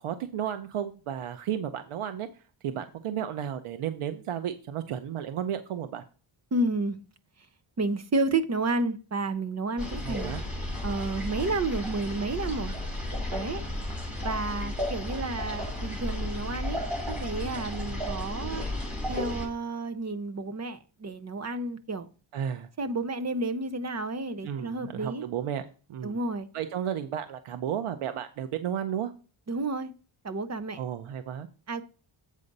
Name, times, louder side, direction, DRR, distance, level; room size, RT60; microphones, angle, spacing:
voice 1, 0.0-6.0 10.0-10.4 22.3-22.7 24.4-26.2 26.5-29.1 30.8-31.5, right 9 dB, 85° right, 0.8 m, -33 dB
voice 2, 6.5-7.0 7.8-10.3 10.8-12.7 13.3-13.6 14.2-16.8 17.1-18.6 19.1-22.1 22.8-25.2 26.0-26.5 29.5-29.9 30.2-30.8 31.7-31.8, right 2 dB, 35° right, 0.7 m, -31 dB
sound 1, 9.8-19.5, left 1 dB, ahead, 2.5 m, -33 dB
8.3 x 4.9 x 5.3 m
wide cardioid pair, 165°, 49 cm